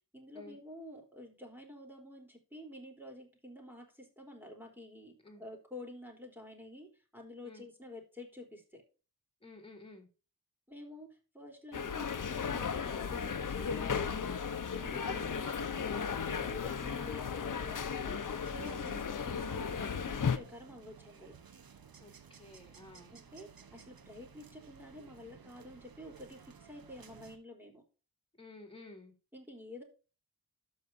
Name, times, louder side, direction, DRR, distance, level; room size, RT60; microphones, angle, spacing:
voice 1, 0.1-8.8 10.7-11.1 11.3-14.5 14.7-18.2 18.5-21.4 23.1-27.8 29.3-29.8, left 1 dB, 5° right, 1 dB, 4.0 m, -49 dB
voice 2, 9.4-10.1 15.0-15.3 22.0-23.1 28.4-29.1, left 2 dB, 15° left, 1 dB, 3.7 m, -53 dB
sound 1, 11.7-20.4, left 6 dB, 60° left, 1.0 m, -35 dB
sound 2, 18.4-27.4, right 6 dB, 70° right, 1.2 m, -57 dB
13.0 x 6.5 x 2.8 m, 0.34 s
cardioid pair, 60°, 36 cm